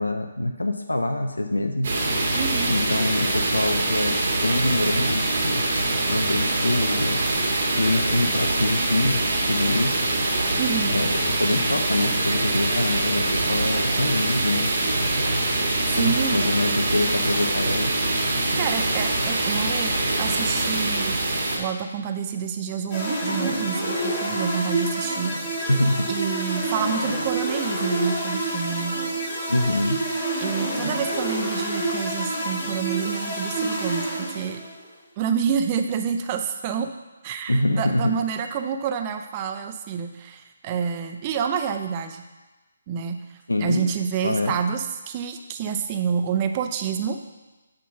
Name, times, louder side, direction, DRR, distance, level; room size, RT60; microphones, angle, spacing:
voice 1, 0.0-1.9 2.7-4.2 4.4-5.6 6.1-7.2 7.8-9.2 9.5-10.0 10.9-15.1 15.9-17.9 25.7-26.1 29.5-30.0 37.5-38.2 43.5-43.8 44.2-44.5, left 1 dB, 80° left, 5 dB, 0.7 m, -25 dB
sound 1, 1.8-21.6, right 2 dB, 50° right, 1.6 m, -24 dB
voice 2, 2.3-2.7 10.6-10.9 15.9-16.4 18.6-21.2 21.6-25.3 26.1-29.0 30.4-34.6 35.2-36.9 37.2-42.2 42.9-43.2 43.6-47.2, right 7 dB, 25° right, 6 dB, 0.6 m, -28 dB
sound 2, 22.9-34.8, right 1 dB, 20° left, 2.5 m, -28 dB
8.3 x 3.9 x 5.7 m, 1.1 s
figure-of-eight pair, 145°, 0 cm